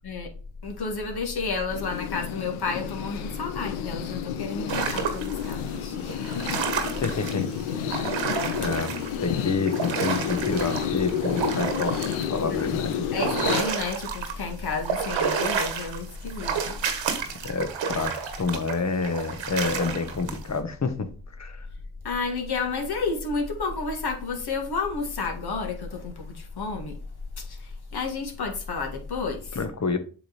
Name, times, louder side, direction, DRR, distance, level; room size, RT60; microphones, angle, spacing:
voice 1, 0.6-6.9 8.6-8.7 12.5-12.7 13.1-16.6 22.0-27.0 27.5-29.6, left 4 dB, 50° left, 1.9 m, -31 dB
sound 1, 1.7-13.6, left 8 dB, 85° left, 0.8 m, -30 dB
sound 2, 4.7-5.5 6.1-9.2 9.4-14.4 14.7-20.4, right 6 dB, 70° right, 1.4 m, -30 dB
voice 2, 7.0-7.5 7.8-8.2 8.5-12.0 12.3-13.0 17.4-21.1 21.4-21.7 29.5-30.0, left 4 dB, 35° left, 1.2 m, -28 dB
7.7 x 3.5 x 4.2 m
supercardioid pair, 60°, 47 cm